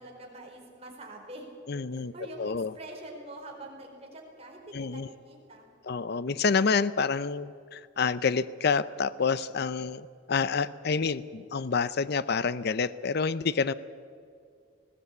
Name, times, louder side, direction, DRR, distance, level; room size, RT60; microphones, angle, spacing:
voice 1, 0.0-1.5 1.9-5.7, right 1 dB, 30° right, 0 dB, 4.4 m, -45 dB
voice 2, 1.7-2.1 2.4-2.7 4.7-5.1 5.8-13.7, left 5 dB, 55° left, 16 dB, 0.6 m, -28 dB
20.0 x 17.0 x 8.3 m, 2.2 s
head